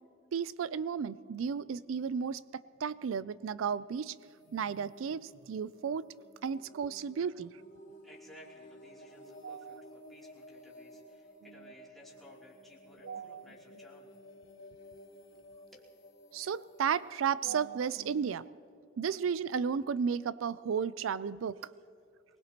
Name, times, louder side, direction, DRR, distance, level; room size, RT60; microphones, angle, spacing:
voice 1, 0.3-4.2 4.5-6.1 6.4-7.5 9.4-9.8 13.0-13.5 16.3-18.4 19.0-21.7, right 7 dB, 90° right, 17 dB, 0.4 m, -33 dB
sound 1, 4.0-18.7, equal, 60° left, 3.8 m, -55 dB
voice 2, 8.0-14.1 15.7-15.9, left 1 dB, ahead, -6 dB, 3.1 m, -57 dB
23.5 x 20.5 x 3.0 m, 2.5 s
head